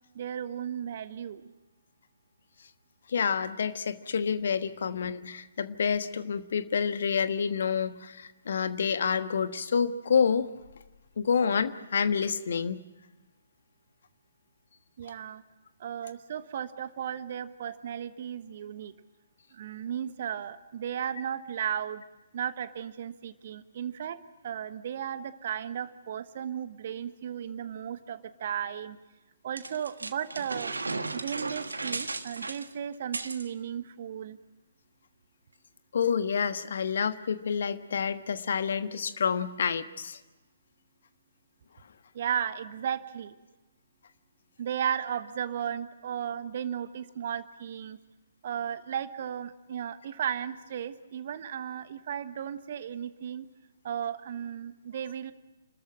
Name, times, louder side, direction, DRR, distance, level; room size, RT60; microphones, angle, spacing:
voice 1, 0.1-1.4 15.0-15.4 15.8-18.9 19.5-22.0 22.3-29.0 29.4-30.7 31.1-34.4 42.1-43.3 44.6-48.0 48.4-53.5 53.8-55.3, right 9 dB, 45° right, 13 dB, 1.2 m, -35 dB
voice 2, 3.1-10.5 11.2-12.8 35.9-40.2, left 6 dB, 55° left, 11 dB, 1.3 m, -28 dB
sound 1, 29.6-33.5, right 3 dB, 75° right, 1.4 m, -35 dB
29.5 x 13.5 x 8.8 m, 1.1 s
figure-of-eight pair, 130°, 0 cm